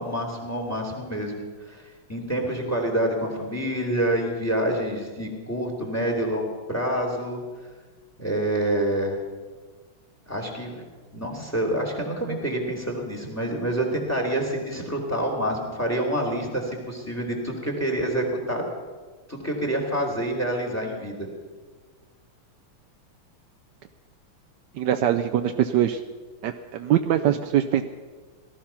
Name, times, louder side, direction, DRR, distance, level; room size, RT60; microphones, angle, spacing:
voice 1, 0.0-1.8 2.1-7.4 8.2-9.2 10.3-10.8 11.1-18.7 19.3-21.3, right 1 dB, 5° left, 2 dB, 2.7 m, -27 dB
voice 2, 24.8-26.0 26.4-27.8, right 11 dB, 75° right, 8 dB, 1.0 m, -22 dB
18.0 x 13.5 x 5.8 m, 1.4 s
omnidirectional pair, 2.4 m